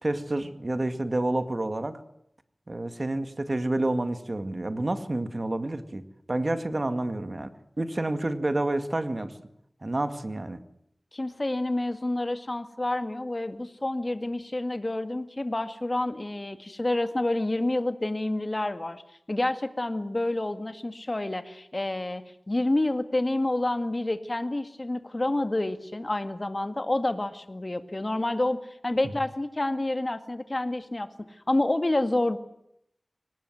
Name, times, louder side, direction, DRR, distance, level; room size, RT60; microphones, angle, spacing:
voice 1, 0.0-2.0 2.7-7.5 7.8-9.3 9.8-10.6, right 2 dB, 50° right, 9 dB, 2.1 m, -29 dB
voice 2, 11.1-19.0 19.3-31.1 31.5-32.4, left 2 dB, 40° left, 9 dB, 2.0 m, -28 dB
23.5 x 19.5 x 9.3 m, 0.74 s
wide cardioid pair, 50°, 0 cm